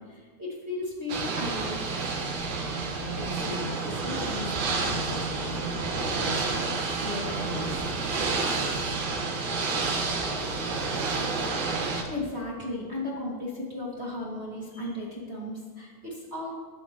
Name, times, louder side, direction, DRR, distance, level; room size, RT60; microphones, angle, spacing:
voice 1, 0.0-1.9 12.0-16.5, left 1 dB, 25° right, -5 dB, 1.3 m, -35 dB
Ocean / Boat Water vehicle, 1.1-12.0, right 3 dB, 55° right, 2.4 m, -29 dB
voice 2, 2.9-8.1, equal, 70° left, -6 dB, 6.0 m, -38 dB
21.5 x 10.0 x 3.1 m, 1.5 s
omnidirectional pair, 5.0 m